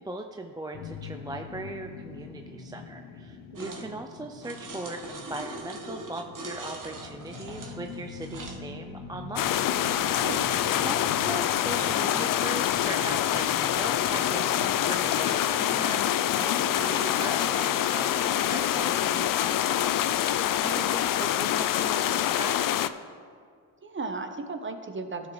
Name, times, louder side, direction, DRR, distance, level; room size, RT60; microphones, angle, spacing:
voice 1, 0.0-10.2 10.8-22.6, right 2 dB, 10° right, 4 dB, 0.4 m, -39 dB
sound 1, 0.7-17.9, left 5 dB, 85° left, 1.0 m, -44 dB
voice 2, 3.5-3.9 10.2-10.5 20.6-21.0 23.8-25.3, right 3 dB, 25° right, 7 dB, 0.9 m, -36 dB
sound 2, 3.6-3.9 4.4-8.6, right 2 dB, 40° right, 1.4 m, -41 dB
sound 3, 9.4-22.9, left 11 dB, 45° left, 0.4 m, -26 dB
12.5 x 6.4 x 3.2 m, 2.2 s
supercardioid pair, 60°, 47 cm